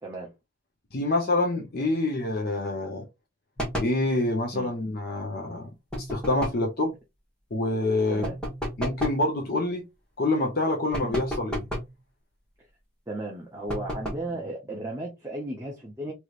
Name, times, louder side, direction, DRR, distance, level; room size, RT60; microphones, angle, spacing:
voice 1, 0.0-0.3 4.5-4.7 8.1-8.4 11.0-11.2 13.1-16.1, right 1 dB, 15° right, 0.8 m, -35 dB
voice 2, 0.9-3.0 3.8-5.7 6.0-6.9 7.5-8.3 8.8-9.8 10.2-11.6, left 2 dB, 50° left, 0.8 m, -26 dB
sound 1, 3.6-4.0 5.9-6.7 8.2-9.3 10.9-12.0 13.7-14.3, equal, 5° left, 1.3 m, -32 dB
3.2 x 3.0 x 2.5 m
head